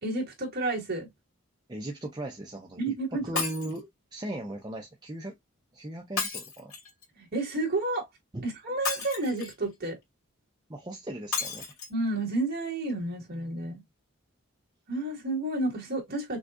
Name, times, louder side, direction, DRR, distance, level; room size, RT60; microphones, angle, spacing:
voice 1, 0.0-1.1 2.8-3.3 7.2-8.1 8.4-10.0 11.9-13.8 14.9-16.4, right 2 dB, 45° right, 2.4 m, -30 dB
voice 2, 1.7-5.4 5.7-6.7 8.3-8.5 10.7-11.6, right 1 dB, 20° right, 0.6 m, -38 dB
Shatter, 3.4-3.8 6.2-7.0 8.8-9.6 11.3-11.9 12.5-12.6 12.9-13.0, left 5 dB, 85° left, 2.4 m, -33 dB
6.2 x 2.3 x 2.6 m
head